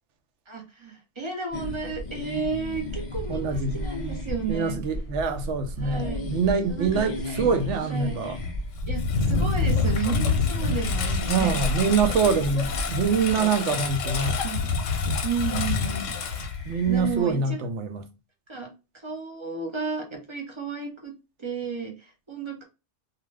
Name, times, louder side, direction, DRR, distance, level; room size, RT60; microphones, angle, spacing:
voice 1, 0.5-4.8 5.8-6.2 6.7-7.1 7.9-8.2 8.9-11.6 13.4-13.5 14.4-14.7 15.2-16.1 16.9-17.6 18.5-18.7 19.0-21.1 21.4-22.6, right 5 dB, 30° right, 0.5 m, -32 dB
sound 1, 1.5-17.3, left 2 dB, 55° left, 0.3 m, -39 dB
sound 2, 1.5-13.1, equal, 50° right, 1.1 m, -34 dB
voice 2, 3.3-3.8 4.5-8.4 11.3-14.4 16.7-18.1, right 5 dB, 70° right, 0.9 m, -25 dB
Engine, 8.4-17.1, left 5 dB, 80° left, 1.0 m, -27 dB
2.5 x 2.3 x 3.1 m
omnidirectional pair, 1.3 m